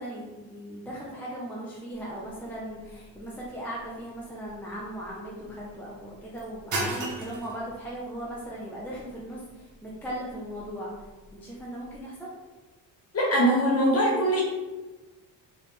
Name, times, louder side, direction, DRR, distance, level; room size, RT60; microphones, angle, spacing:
voice 1, 0.0-10.9 11.3-12.3, right 1 dB, 5° left, -6 dB, 0.5 m, -38 dB
sound 1, 1.9-12.0, right 2 dB, 40° right, 0.9 m, -40 dB
voice 2, 13.1-14.4, right 1 dB, 30° left, -3 dB, 1.3 m, -22 dB
4.7 x 3.5 x 3.2 m, 1.2 s
cardioid pair, 155°, 44 cm